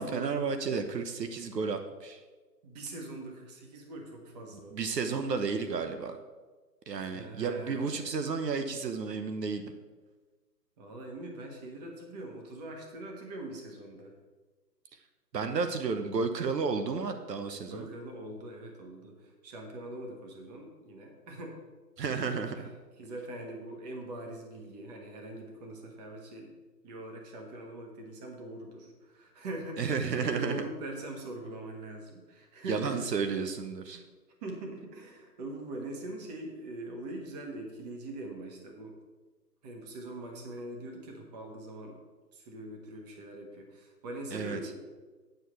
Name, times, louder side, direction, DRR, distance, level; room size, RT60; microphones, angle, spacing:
voice 1, 0.0-2.2 4.7-6.2 6.9-9.6 15.3-17.9 22.0-22.7 29.8-30.6 32.7-34.0 44.3-44.6, right 5 dB, 75° right, 8 dB, 1.1 m, -32 dB
voice 2, 2.6-4.9 7.0-7.9 10.8-14.1 17.7-21.6 22.6-22.7 23.0-26.5 26.8-33.0 33.9-34.0 34.4-39.0 39.6-42.0 42.3-44.7, right 1 dB, 25° right, 2 dB, 1.4 m, -42 dB
9.1 x 4.7 x 7.5 m, 1.3 s
hypercardioid pair, 155°, 50 cm